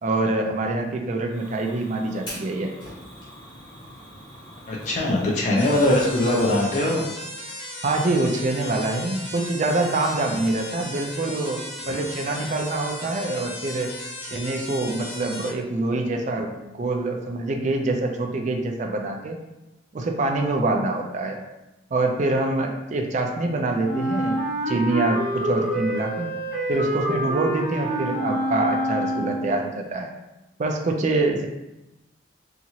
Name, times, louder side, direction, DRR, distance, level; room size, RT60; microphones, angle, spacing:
voice 1, 0.0-2.7 7.8-13.9 14.3-19.4 19.9-21.4 21.9-24.4 24.7-26.3 26.7-30.1 30.6-31.5, right 2 dB, 40° right, 2 dB, 0.3 m, -25 dB
Fire, 1.3-6.6, equal, 25° left, 0.9 m, -43 dB
voice 2, 4.7-7.1 11.9-12.0, left 1 dB, 40° left, -3 dB, 0.5 m, -21 dB
sound 1, 5.6-15.5, left 1 dB, 65° left, 1.0 m, -36 dB
Wind instrument woodwind instrument, 23.8-29.6, right 1 dB, 75° right, 0.9 m, -27 dB
2.8 x 2.4 x 2.7 m, 0.97 s
head